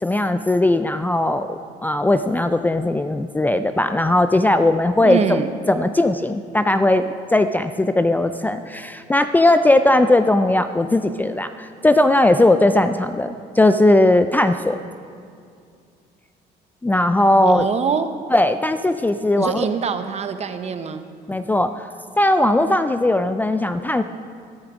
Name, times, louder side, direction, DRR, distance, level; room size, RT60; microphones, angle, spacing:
voice 1, 0.0-14.8 16.8-17.7 18.3-19.7 21.3-21.9 22.2-24.0, left 1 dB, 10° left, 9 dB, 0.4 m, -18 dB
voice 2, 5.0-5.5 17.4-18.1 19.4-21.1, right 6 dB, 40° right, 9 dB, 0.9 m, -24 dB
14.0 x 12.5 x 4.9 m, 2.3 s
cardioid pair, 110°, 17 cm